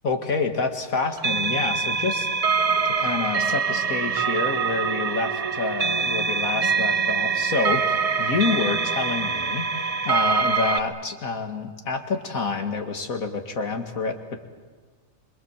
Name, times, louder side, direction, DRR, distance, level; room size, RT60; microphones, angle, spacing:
voice 1, 0.0-2.3 2.8-14.2, left 4 dB, 90° left, 5 dB, 2.5 m, -28 dB
sound 1, 1.2-10.8, right 5 dB, 35° right, 0.7 m, -24 dB
26.5 x 24.0 x 7.4 m, 1.5 s
omnidirectional pair, 1.4 m